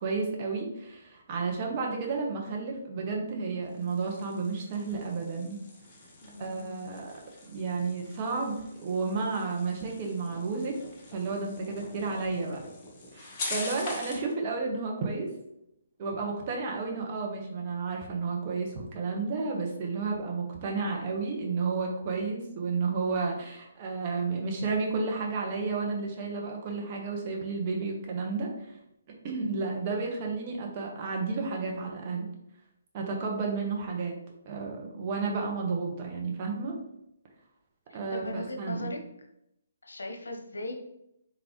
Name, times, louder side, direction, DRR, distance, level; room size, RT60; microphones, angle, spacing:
voice 1, 0.0-5.6 6.4-7.1 7.5-10.8 11.1-12.6 13.1-15.3 16.0-28.8 29.2-32.3 32.9-34.2 34.4-36.7 37.9-38.9, right 4 dB, 35° right, 0 dB, 1.0 m, -32 dB
sound 1, 3.6-14.3, left 2 dB, 30° left, 1.0 m, -43 dB
voice 2, 6.2-6.9 29.4-29.6 37.9-39.0 39.8-40.7, left 2 dB, 80° left, 3 dB, 0.8 m, -39 dB
3.7 x 3.6 x 3.0 m, 0.81 s
figure-of-eight pair, 140°, 0 cm